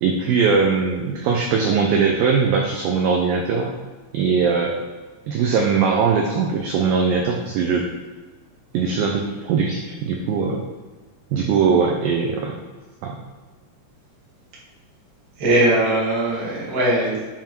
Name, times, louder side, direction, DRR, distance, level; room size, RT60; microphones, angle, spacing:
voice 1, 0.0-3.7 4.1-4.8 5.3-7.9 8.7-10.6 11.3-12.6 13.0-13.2, right 5 dB, 85° right, 1 dB, 2.0 m, -20 dB
voice 2, 15.4-17.2, right 1 dB, 50° right, -6 dB, 1.1 m, -20 dB
7.3 x 3.6 x 4.4 m, 1.4 s
omnidirectional pair, 4.8 m